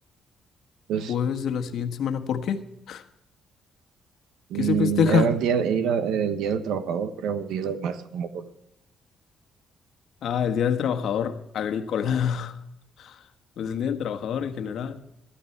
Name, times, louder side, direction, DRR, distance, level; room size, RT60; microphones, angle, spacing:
voice 1, 1.1-3.0 4.6-5.3 10.2-12.5 13.0-13.1 13.6-15.0, left 7 dB, 70° left, 1.4 m, -26 dB
voice 2, 4.5-8.4, right 7 dB, 90° right, 1.2 m, -26 dB
14.5 x 13.0 x 4.6 m
cardioid pair, 90°, 0 cm